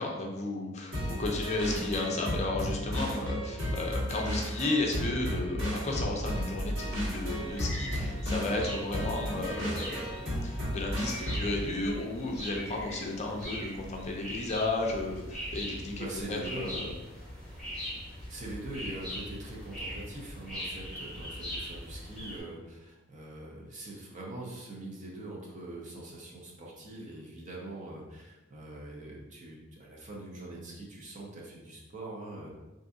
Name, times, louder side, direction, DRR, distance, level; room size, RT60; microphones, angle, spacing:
voice 1, 0.0-16.9, left 2 dB, 35° left, 0 dB, 0.5 m, -33 dB
sound 1, 0.9-11.6, equal, 75° right, 1.5 m, -33 dB
sound 2, 6.8-22.4, equal, ahead, 1.5 m, -41 dB
voice 2, 16.0-16.7 18.0-32.5, right 2 dB, 40° right, -3 dB, 0.7 m, -43 dB
3.6 x 2.6 x 2.5 m, 1.1 s
head